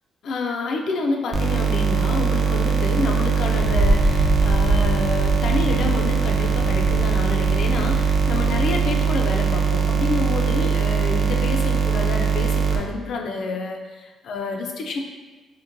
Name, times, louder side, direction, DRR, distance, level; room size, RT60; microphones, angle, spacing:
voice 1, 0.2-15.0, left 3 dB, 65° left, 2 dB, 0.3 m, -28 dB
sound 1, 1.3-12.8, right 6 dB, 50° right, 0.3 m, -21 dB
Wind, 3.5-9.0, equal, 5° right, 0.6 m, -25 dB
2.9 x 2.1 x 2.5 m, 1.2 s
cardioid pair, 90°, 0 cm